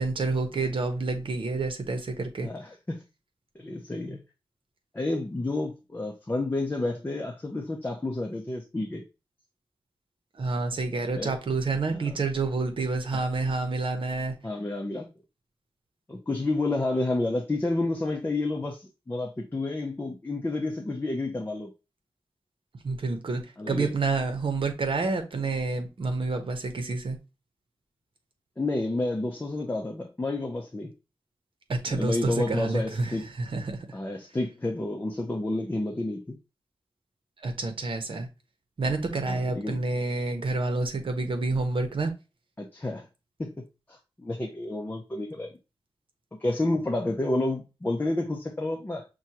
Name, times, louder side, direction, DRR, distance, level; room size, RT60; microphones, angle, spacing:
voice 1, 0.0-2.5 10.4-14.3 22.8-27.2 31.7-33.9 37.4-38.3 38.8-42.1, right 3 dB, 65° right, 0.9 m, -28 dB
voice 2, 2.4-3.0 3.6-4.2 4.9-9.0 11.1-11.3 11.9-12.0 14.4-15.1 16.1-21.7 23.6-23.9 28.6-30.9 31.9-33.3 33.9-36.4 39.3-39.8 42.6-43.1 43.4-43.6 43.9-45.5 46.4-49.1, left 2 dB, 20° left, 0.6 m, -30 dB
6.1 x 2.3 x 2.8 m
wide cardioid pair, 110°, 9 cm